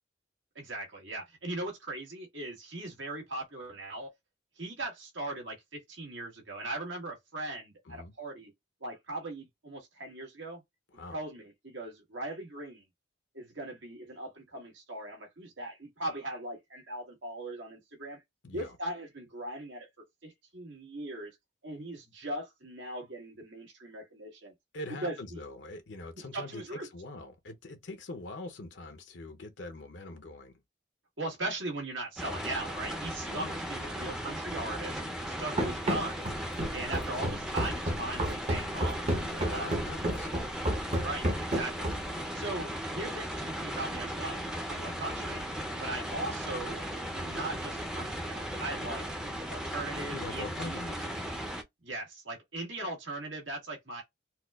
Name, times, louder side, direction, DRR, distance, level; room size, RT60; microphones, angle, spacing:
voice 1, 0.5-4.1 4.6-8.5 8.8-10.6 11.1-12.8 13.3-18.2 18.5-19.9 20.2-21.3 21.6-24.5 25.0-25.4 26.3-26.9 31.2-35.0 35.3-36.3 36.7-39.0 39.5-39.8 41.0-41.9 42.3-44.4 44.7-45.5 45.8-46.8 47.1-49.0 49.5-50.8 51.8-54.0, right 2 dB, 80° right, 1.6 m, -39 dB
voice 2, 18.4-18.7 24.7-30.6 33.3-33.6 39.2-40.3 44.8-45.0 50.1-51.2, left 2 dB, 70° left, 0.6 m, -43 dB
sound 1, 32.2-51.6, equal, 5° right, 0.5 m, -37 dB
Run, 35.6-42.2, right 1 dB, 35° right, 0.7 m, -31 dB
4.1 x 2.3 x 2.3 m
head